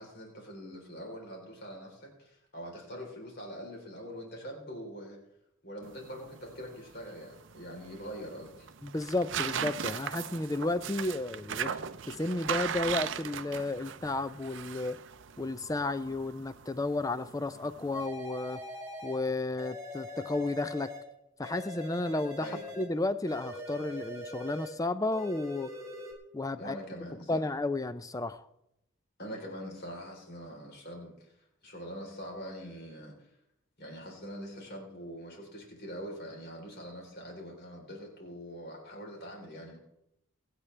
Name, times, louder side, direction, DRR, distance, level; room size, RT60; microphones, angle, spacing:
voice 1, 0.0-5.2 5.6-8.7 22.4-22.6 26.6-27.5 29.2-31.3 31.6-33.3 33.8-39.8, equal, 45° left, 0 dB, 3.8 m, -43 dB
sound 1, 5.8-18.1, right 8 dB, 60° right, 0.5 m, -39 dB
voice 2, 8.8-11.7 12.1-15.0 15.4-18.6 19.0-20.9 21.4-22.5 22.8-25.7 26.3-26.8 27.3-28.5, left 2 dB, 15° left, 13 dB, 0.4 m, -32 dB
sound 2, 17.9-19.2 19.6-21.1 21.4-22.9 23.3-24.8 25.1-26.1, left 1 dB, 15° right, 2.7 m, -42 dB
24.5 x 8.4 x 3.3 m, 0.85 s
head